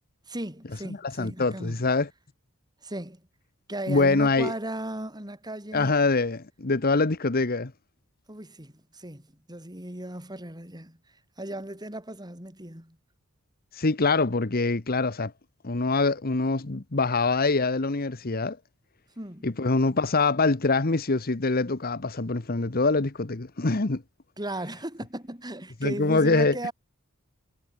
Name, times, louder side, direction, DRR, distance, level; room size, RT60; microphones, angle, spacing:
voice 1, 0.2-1.8 2.8-3.3 3.7-5.9 8.3-13.0 19.2-19.5 24.4-26.7, right 1 dB, 20° right, 6.7 m, -36 dB
voice 2, 1.0-2.1 3.9-4.5 5.7-7.7 13.7-15.3 15.6-18.6 19.4-24.0 25.8-26.6, left 3 dB, 45° left, 1.1 m, -24 dB
head